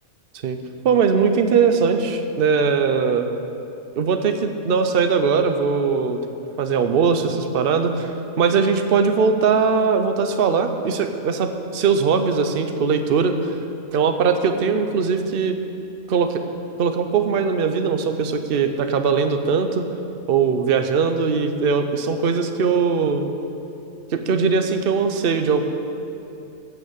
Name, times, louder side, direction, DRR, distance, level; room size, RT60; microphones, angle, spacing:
voice 1, 0.8-3.3 4.0-6.2 6.6-13.3 13.9-15.6 16.1-16.4 16.8-19.9 20.3-23.3 24.1-25.6, right 5 dB, 50° right, 7 dB, 0.9 m, -20 dB
15.5 x 6.0 x 7.3 m, 2.7 s
omnidirectional pair, 1.3 m